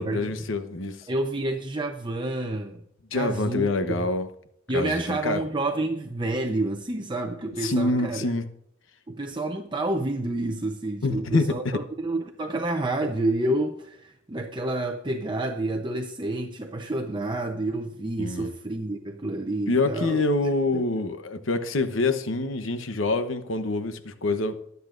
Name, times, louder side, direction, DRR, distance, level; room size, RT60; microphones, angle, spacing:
voice 1, 0.0-1.1 3.1-4.3 4.7-5.4 7.6-8.5 11.0-11.7 18.2-18.5 19.7-24.6, left 2 dB, 80° left, 1.0 m, -26 dB
voice 2, 1.1-2.8 3.1-4.1 4.7-8.3 9.1-20.2 20.7-20.8, right 2 dB, 25° right, 0.7 m, -29 dB
22.5 x 8.1 x 2.6 m
head